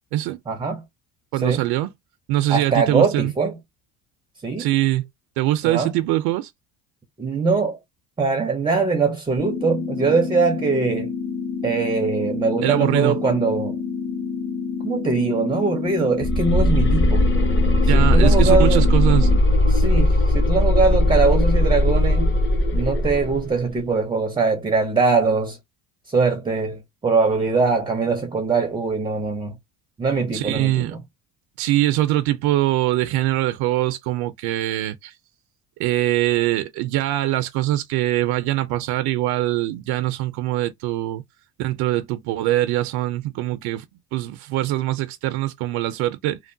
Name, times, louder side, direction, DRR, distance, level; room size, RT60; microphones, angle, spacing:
voice 1, 0.5-0.8 1.4-1.6 2.5-3.6 4.4-4.7 5.7-5.9 7.2-7.8 8.2-11.1 11.6-13.8 14.8-17.3 17.9-18.8 19.6-22.3 22.7-25.6 26.1-29.6 30.0-30.9, right 4 dB, 15° right, 0.4 m, -22 dB
voice 2, 1.3-1.9 2.3-3.3 4.6-5.1 5.4-6.5 12.6-13.2 17.9-19.3 30.3-31.0 31.6-35.1 35.8-41.2 41.6-43.9 44.1-46.4, right 15 dB, 85° right, 0.5 m, -22 dB
sound 1, 9.4-19.4, left 5 dB, 80° left, 1.7 m, -29 dB
sound 2, 16.2-23.4, left 1 dB, 35° left, 0.6 m, -18 dB
3.0 x 2.1 x 2.5 m
cardioid pair, 145°, 37 cm